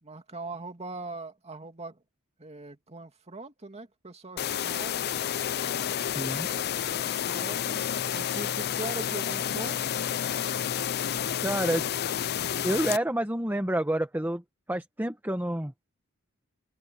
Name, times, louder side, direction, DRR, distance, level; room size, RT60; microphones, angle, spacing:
voice 1, 0.0-2.0 2.4-5.1 6.8-9.9, right 2 dB, 30° right, 2.4 m, -41 dB
sound 1, 4.4-13.0, left 9 dB, 50° left, 0.5 m, -30 dB
voice 2, 6.1-6.5 11.4-11.9 12.6-14.4 14.7-15.7, right 1 dB, 10° right, 1.4 m, -28 dB
open air
head